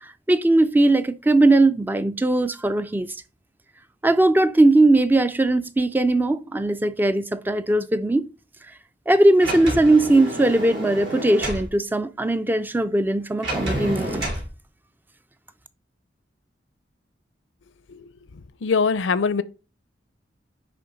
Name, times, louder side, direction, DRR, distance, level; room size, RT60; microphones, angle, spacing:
voice 1, 0.0-3.1 4.0-8.3 9.1-14.3, right 2 dB, 10° right, 0.3 m, -19 dB
Sliding door, 9.4-11.7 13.4-14.5, right 1 dB, 75° right, 3.6 m, -29 dB
voice 2, 18.6-19.4, left 5 dB, 80° left, 0.5 m, -21 dB
10.0 x 3.7 x 4.0 m
head